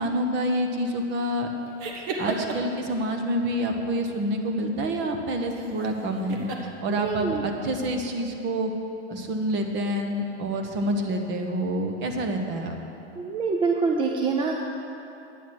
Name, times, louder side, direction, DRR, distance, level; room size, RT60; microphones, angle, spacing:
voice 1, 0.0-1.5 2.2-6.5 6.8-8.7 9.1-12.8, right 1 dB, 30° right, 4 dB, 1.2 m, -27 dB
sound 1, 1.8-2.8 5.5-5.9 6.3-6.6, right 3 dB, 45° right, 1.5 m, -32 dB
voice 2, 6.9-7.4 13.2-14.5, right 4 dB, 15° right, 1 dB, 0.5 m, -25 dB
10.5 x 9.2 x 6.3 m, 2.9 s
supercardioid pair, 135°, 34 cm